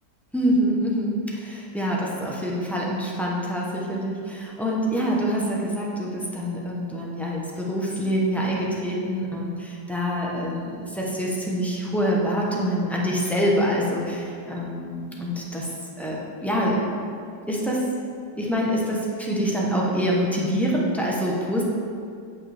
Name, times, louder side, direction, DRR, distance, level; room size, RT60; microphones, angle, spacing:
voice 1, 0.3-15.7 16.0-17.0 17.5-17.8 18.4-21.6, equal, ahead, -4 dB, 0.3 m, -25 dB
9.3 x 5.6 x 3.4 m, 2.3 s
omnidirectional pair, 1.9 m